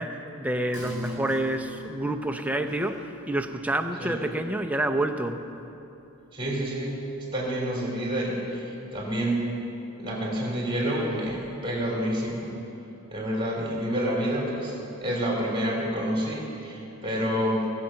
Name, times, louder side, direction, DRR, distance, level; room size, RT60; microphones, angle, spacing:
voice 1, 0.0-5.4, right 1 dB, 5° right, 6 dB, 0.6 m, -28 dB
sound 1, 0.7-7.8 8.1-8.2, right 1 dB, 85° left, 3.8 m, -44 dB
voice 2, 6.3-7.0 7.3-9.5 10.0-12.5 13.1-17.7, equal, 25° right, -3 dB, 3.2 m, -28 dB
19.5 x 7.7 x 5.7 m, 2.8 s
head